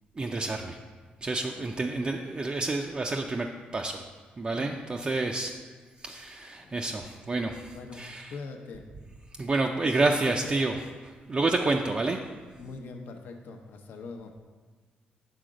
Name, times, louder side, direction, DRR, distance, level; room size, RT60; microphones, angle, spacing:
voice 1, 0.2-0.8 1.2-3.5 3.7-4.0 4.4-5.5 6.0-8.3 9.4-10.8 11.0-12.2, right 3 dB, 30° right, 2 dB, 0.4 m, -29 dB
voice 2, 8.3-8.8 9.8-10.4 11.6-11.7 12.6-14.3, left 4 dB, 70° left, 4 dB, 0.7 m, -42 dB
6.3 x 3.8 x 5.0 m, 1.4 s
cardioid pair, 95°, 3 cm